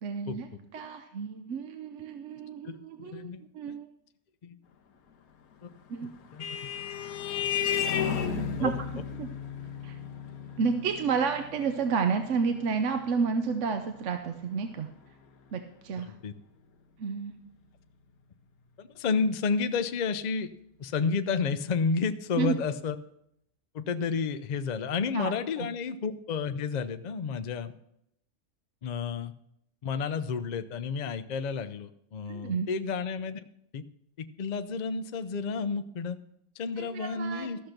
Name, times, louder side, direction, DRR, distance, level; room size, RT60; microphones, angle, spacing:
voice 1, 0.0-0.5 0.7-3.9 5.9-6.1 8.4-8.7 9.2-9.3 9.8-10.0 10.6-14.9 15.5-16.1 17.0-17.3 22.4-22.5 25.1-25.3 25.6-25.7 32.3-32.7 36.8-37.5, right 5 dB, 60° right, 7 dB, 1.0 m, -31 dB
voice 2, 2.6-3.4 4.4-4.6 5.6-5.7 6.3-6.8 7.4-7.7 8.6-8.7 16.0-16.3 18.8-20.5 20.8-23.0 23.7-27.7 28.8-29.3 29.8-33.4 33.7-33.8 34.2-36.2 36.6-37.6, left 5 dB, 55° left, 10 dB, 0.4 m, -31 dB
Vehicle horn car horn honking, 5.8-14.8, left 8 dB, 80° left, 1.4 m, -34 dB
13.5 x 6.5 x 5.9 m, 0.75 s
omnidirectional pair, 1.5 m